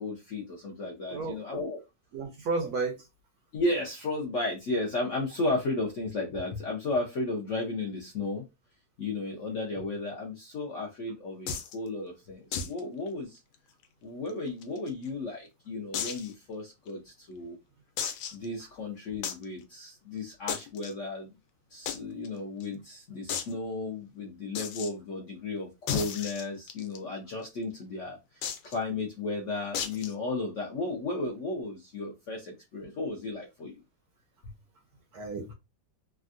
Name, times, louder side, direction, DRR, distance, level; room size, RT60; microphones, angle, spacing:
voice 1, 0.0-1.8 3.5-8.4 9.0-13.4 14.0-17.6 18.3-21.3 21.7-28.2 28.6-33.7 34.4-34.5, left 2 dB, 60° left, 0.8 m, -34 dB
voice 2, 1.1-1.4 2.1-3.1 35.1-35.5, right 3 dB, 70° right, 1.0 m, -32 dB
sound 1, 11.5-11.7 12.5-12.8 13.1-13.2 13.5-13.6 14.3-15.1 15.9-16.3 16.9-17.0 18.0-18.5 19.2-19.4 20.5-20.9 21.9-22.0 22.2-22.3 22.6-22.7 23.3-23.5 24.5-24.9 25.9-27.0 28.4-28.7 29.7-30.1, left 7 dB, 90° left, 1.3 m, -33 dB
3.5 x 2.2 x 2.5 m
omnidirectional pair, 2.0 m